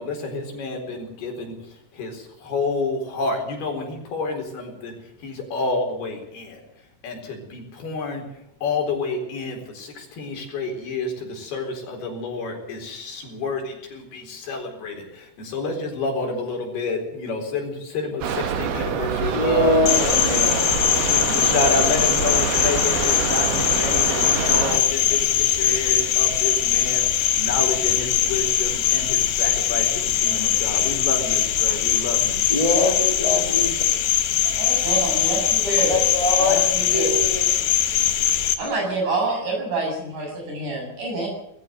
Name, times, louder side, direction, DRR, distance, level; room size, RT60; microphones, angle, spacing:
voice 1, 0.0-6.6 7.0-8.3 8.6-19.8 20.3-20.7 21.0-32.5, left 3 dB, 70° left, 6.0 m, -29 dB
sound 1, 18.2-24.8, right 7 dB, 70° right, 3.5 m, -26 dB
voice 2, 19.2-20.4 32.5-33.8 34.9-35.0 35.9-36.6 36.9-37.6 38.6-38.9, left 1 dB, 10° left, 2.7 m, -23 dB
Cricket, 19.9-38.6, left 10 dB, 90° left, 3.6 m, -21 dB
voice 3, 34.8-36.0 36.4-36.6 36.9-37.1 38.6-41.3, right 2 dB, 50° right, 8.5 m, -26 dB
20.0 x 14.5 x 9.3 m
omnidirectional pair, 4.7 m